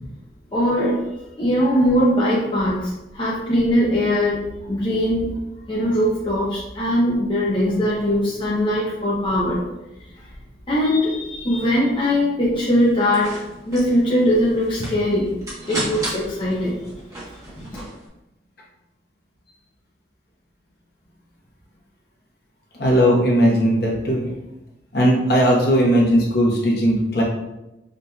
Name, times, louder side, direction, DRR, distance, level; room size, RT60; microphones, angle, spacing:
voice 1, 0.5-1.0 1.4-5.3 5.7-9.6 10.7-13.3 13.7-15.3 15.7-16.8, equal, 25° left, -6 dB, 0.6 m, -20 dB
sound 1, 12.8-18.1, right 1 dB, 20° right, 1.0 m, -34 dB
voice 2, 22.8-24.3 24.9-27.2, equal, 55° left, -3 dB, 1.0 m, -17 dB
5.1 x 2.8 x 2.2 m, 0.96 s
head